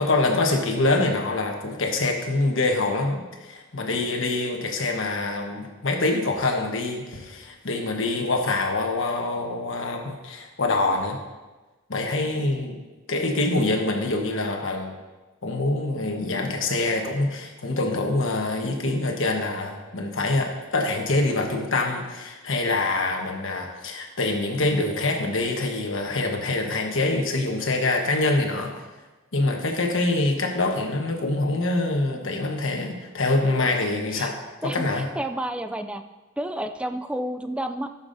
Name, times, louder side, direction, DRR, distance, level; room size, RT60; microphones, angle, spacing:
voice 1, 0.0-11.2 11.9-12.8 13.1-14.9 15.4-28.7 29.3-34.4 34.6-35.1, left 2 dB, 80° left, 2 dB, 1.2 m, -25 dB
voice 2, 34.6-36.0 36.4-37.9, right 1 dB, 5° right, 7 dB, 0.3 m, -30 dB
14.0 x 7.0 x 2.7 m, 1.2 s
head